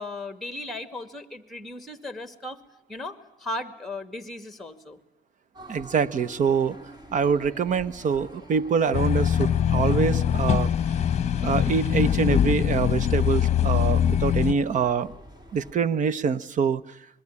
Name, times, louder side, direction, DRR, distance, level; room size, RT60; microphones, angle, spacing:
voice 1, 0.0-2.6 2.9-5.0, left 2 dB, ahead, 10 dB, 2.4 m, -36 dB
sound 1, 5.5-15.7, equal, 25° right, 3.8 m, -47 dB
voice 2, 5.7-6.8 7.1-10.7 11.4-15.1 15.5-17.0, right 6 dB, 50° right, 16 dB, 1.1 m, -25 dB
sound 2, 8.9-14.5, left 9 dB, 40° left, 1.0 m, -23 dB
26.0 x 22.0 x 9.8 m, 0.76 s
cardioid pair, 110°, 17 cm